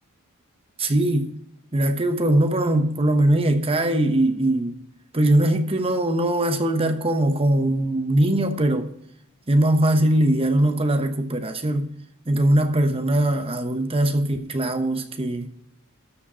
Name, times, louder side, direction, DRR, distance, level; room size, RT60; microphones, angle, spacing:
voice 1, 0.8-1.3 1.7-4.8 5.1-8.9 9.5-11.9 12.3-15.5, right 1 dB, 25° right, 1.0 m, -21 dB
13.5 x 5.2 x 5.6 m
head